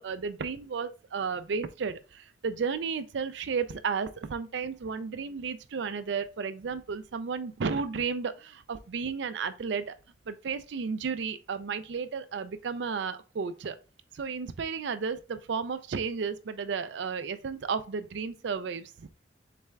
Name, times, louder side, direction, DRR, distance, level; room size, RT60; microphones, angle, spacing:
voice 1, 0.0-9.9 10.3-13.8 14.1-19.1, right 5 dB, 70° right, 0.4 m, -33 dB
4.1 x 3.3 x 3.4 m
head